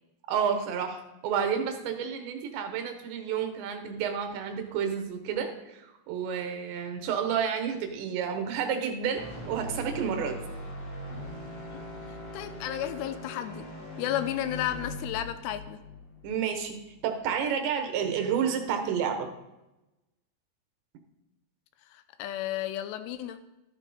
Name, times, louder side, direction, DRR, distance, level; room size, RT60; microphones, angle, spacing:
voice 1, 0.3-10.4 16.2-16.8 17.0-19.3, right 7 dB, 90° right, 6 dB, 3.5 m, -30 dB
sound 1, 9.1-17.3, left 1 dB, 25° left, 1.3 m, -41 dB
voice 2, 12.3-13.7 14.0-15.8 21.9-23.4, left 11 dB, 85° left, 10 dB, 2.8 m, -33 dB
12.5 x 7.9 x 4.3 m, 0.97 s
omnidirectional pair, 5.0 m